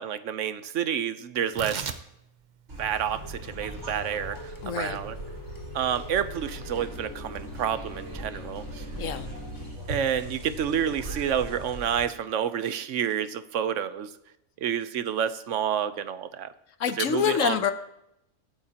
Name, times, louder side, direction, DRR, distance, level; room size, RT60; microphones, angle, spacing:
voice 1, 0.0-1.9 2.8-5.2 5.7-8.8 9.9-14.1 14.6-16.5 17.0-17.6, right 9 dB, 70° right, 13 dB, 1.0 m, -29 dB
Tearing, 1.4-8.1, right 6 dB, 45° right, 0.7 m, -42 dB
sound 1, 2.7-12.1, right 1 dB, 90° right, 4.3 m, -40 dB
sound 2, 3.7-9.8, left 2 dB, 20° left, 0.9 m, -45 dB
voice 2, 4.6-5.0 9.0-9.3 16.8-17.7, left 8 dB, 75° left, 11 dB, 1.2 m, -26 dB
22.0 x 8.8 x 2.9 m, 0.83 s
omnidirectional pair, 1.3 m